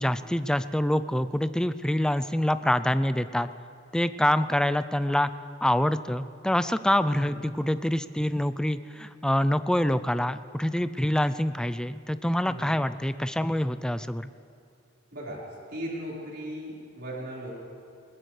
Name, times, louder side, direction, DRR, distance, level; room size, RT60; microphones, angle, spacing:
voice 1, 0.0-3.5 3.9-5.3 5.6-14.3, left 1 dB, 5° left, 13 dB, 0.3 m, -26 dB
voice 2, 7.0-7.4 12.4-12.8 15.1-15.4 15.7-17.5, equal, 60° right, -6 dB, 4.6 m, -37 dB
21.0 x 20.0 x 3.3 m, 2.6 s
head